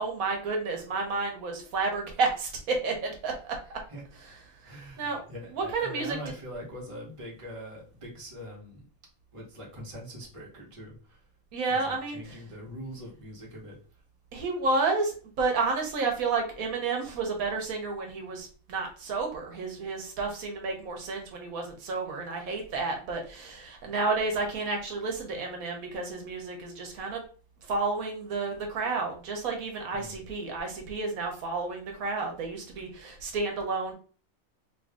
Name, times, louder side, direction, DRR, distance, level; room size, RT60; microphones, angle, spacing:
voice 1, 0.0-3.8 4.7-5.2 5.5-6.2 11.5-12.4 14.3-27.2 27.6-33.9, right 3 dB, 85° right, 2 dB, 1.3 m, -31 dB
voice 2, 3.4-4.0 4.6-8.8 9.3-11.2 11.7-13.8 22.1-22.2 29.9-30.2, equal, 25° right, -3 dB, 1.1 m, -43 dB
3.0 x 2.6 x 3.5 m, 0.39 s
omnidirectional pair, 1.5 m